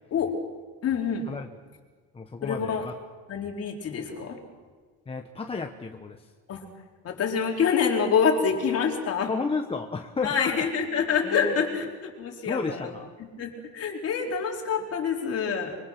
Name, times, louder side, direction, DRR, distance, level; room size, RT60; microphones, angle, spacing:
voice 1, 0.8-1.3 2.4-2.9 3.3-4.4 6.5-6.6 7.0-9.3 10.2-12.9 13.2-15.7, left 6 dB, 40° left, 1 dB, 4.4 m, -26 dB
voice 2, 2.1-2.9 5.1-6.3 9.3-10.6 11.2-11.6 12.5-13.1, left 4 dB, 15° left, 4 dB, 1.1 m, -32 dB
25.0 x 24.5 x 6.1 m, 1.5 s
cardioid pair, 140°, 38 cm